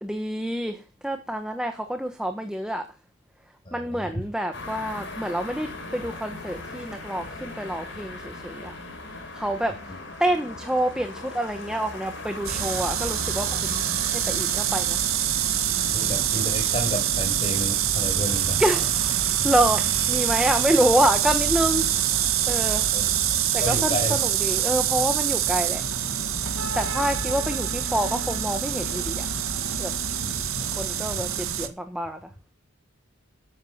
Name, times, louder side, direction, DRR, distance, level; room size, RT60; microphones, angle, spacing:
voice 1, 0.0-2.9 3.7-8.7 9.3-15.0 18.6-19.1 19.4-21.9 22.5-22.8 23.5-25.8 26.7-29.3 29.8-29.9 30.7-32.2, right 1 dB, 5° right, 1.2 m, -27 dB
voice 2, 3.6-4.2 9.9-10.0 15.9-18.6 22.9-23.1 23.6-24.2 26.8-27.1 30.2-30.4 31.1-31.2, equal, 25° left, 6.4 m, -31 dB
sound 1, 4.5-22.9, left 2 dB, 55° left, 4.8 m, -40 dB
sound 2, 12.4-31.7, right 9 dB, 90° right, 1.9 m, -25 dB
13.5 x 9.7 x 7.3 m
head